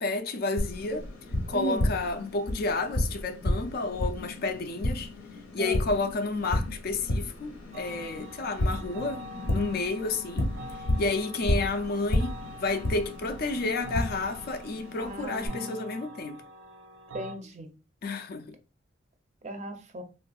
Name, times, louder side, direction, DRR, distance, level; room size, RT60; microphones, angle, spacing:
voice 1, 0.0-1.1 1.5-5.1 5.5-10.5 11.0-16.4 18.0-18.6, left 3 dB, 50° left, 0.4 m, -31 dB
Tap, 0.6-15.5, left 1 dB, 80° left, 0.8 m, -32 dB
voice 2, 1.5-1.8 5.6-5.8 15.0-16.0 17.1-17.7 19.4-20.0, right 2 dB, 35° right, 0.5 m, -36 dB
sound 1, 7.7-17.4, equal, 85° right, 0.6 m, -45 dB
3.4 x 2.5 x 2.2 m
head